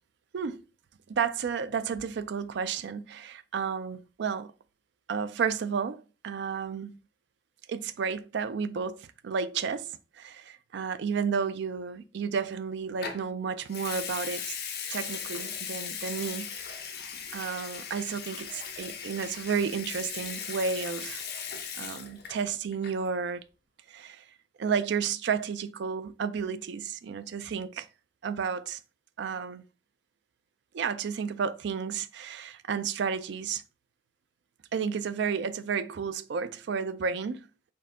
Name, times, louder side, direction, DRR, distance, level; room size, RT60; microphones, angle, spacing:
voice 1, 1.1-4.5 5.1-7.0 7.7-14.5 14.9-16.9 17.3-21.2 21.8-23.4 23.9-24.2 24.6-27.9 28.2-28.8 29.2-29.6 30.7-33.6 34.7-37.4, right 6 dB, 65° right, 0.4 m, -32 dB
Water tap faucet / Sink (filling or washing) / Liquid, 13.0-13.2 13.7-22.5 22.7-23.1, left 7 dB, 60° left, 0.8 m, -38 dB
4.4 x 2.7 x 3.5 m
head